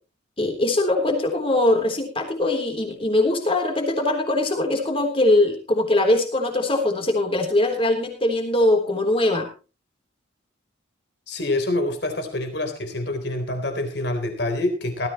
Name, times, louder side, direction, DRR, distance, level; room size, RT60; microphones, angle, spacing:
voice 1, 0.4-9.5, left 2 dB, 30° left, 3 dB, 3.6 m, -21 dB
voice 2, 11.3-15.1, left 2 dB, 55° left, 5 dB, 3.8 m, -26 dB
19.0 x 14.0 x 3.1 m, 0.33 s
head